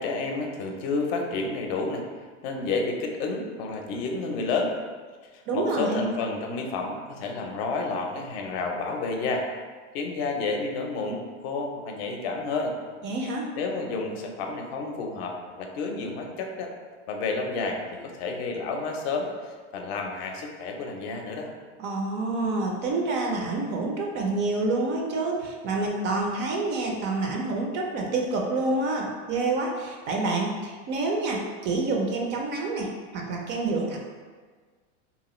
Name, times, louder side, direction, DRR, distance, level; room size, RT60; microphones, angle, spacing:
voice 1, 0.0-2.1 2.4-4.7 5.3-9.5 9.9-12.8 13.2-16.7 17.1-21.5, left 3 dB, 60° left, 2 dB, 0.6 m, -30 dB
voice 2, 5.5-6.1 13.0-13.5 21.8-34.0, right 3 dB, 35° right, 0 dB, 0.4 m, -28 dB
2.8 x 2.3 x 3.0 m, 1.5 s
supercardioid pair, 120°, 35 cm